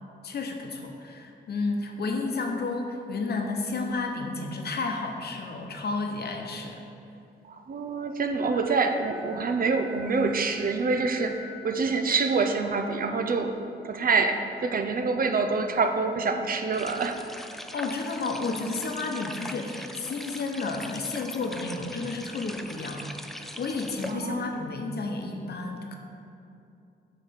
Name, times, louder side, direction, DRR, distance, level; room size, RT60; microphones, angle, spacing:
voice 1, 0.2-6.8 17.7-25.9, left 3 dB, 60° left, 2 dB, 0.8 m, -32 dB
voice 2, 7.5-13.6 13.8-17.2 24.0-24.6, right 4 dB, 50° right, 6 dB, 0.5 m, -26 dB
Wind instrument woodwind instrument, 8.4-11.9, left 3 dB, 85° left, 1.0 m, -47 dB
sound 1, 16.7-24.1, equal, ahead, 0.3 m, -41 dB
7.4 x 3.2 x 5.7 m, 2.6 s
cardioid pair, 75°, 18 cm